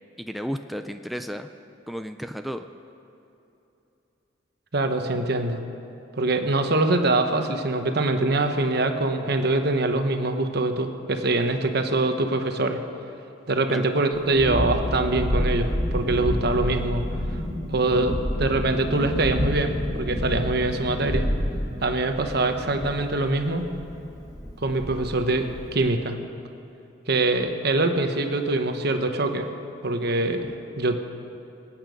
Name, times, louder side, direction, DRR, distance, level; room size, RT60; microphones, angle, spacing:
voice 1, 0.2-1.5 1.9-2.7 13.7-13.9, equal, ahead, 6 dB, 0.4 m, -33 dB
voice 2, 4.7-5.6 6.1-12.8 13.5-17.0 17.7-21.3 21.8-23.7 24.6-26.2 27.1-29.5 29.8-31.0, right 2 dB, 55° right, 6 dB, 1.2 m, -24 dB
Thunderstorm, 14.1-25.7, equal, 20° left, 1.4 m, -29 dB
26.5 x 8.9 x 5.3 m, 2.8 s
head